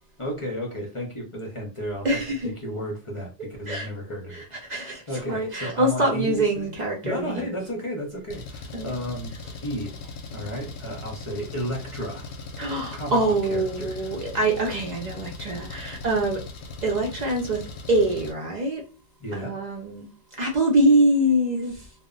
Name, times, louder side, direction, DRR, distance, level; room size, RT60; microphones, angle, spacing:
voice 1, 0.2-6.7 7.0-9.3 9.6-9.9 10.3-12.3 12.9-13.2 13.5-14.1 19.2-19.6, equal, 35° left, 0.6 m, -33 dB
voice 2, 2.0-2.5 3.7-3.9 4.3-7.5 8.7-8.9 12.6-16.4 16.8-18.8 19.3-20.1 20.4-21.9, right 1 dB, 50° right, 0.6 m, -24 dB
Engine, 8.3-18.3, left 3 dB, 70° left, 0.7 m, -39 dB
2.0 x 2.0 x 3.6 m
omnidirectional pair, 1.1 m